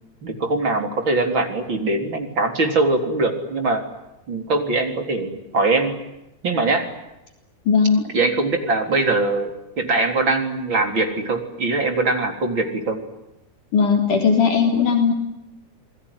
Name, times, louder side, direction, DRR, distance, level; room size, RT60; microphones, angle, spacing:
voice 1, 0.2-3.9 4.3-6.0 6.4-6.9 8.1-13.0, right 2 dB, 35° right, 5 dB, 4.4 m, -22 dB
voice 2, 7.7-8.0 13.7-15.1, left 6 dB, 75° left, 4 dB, 5.2 m, -17 dB
27.5 x 20.5 x 9.8 m, 0.90 s
omnidirectional pair, 3.7 m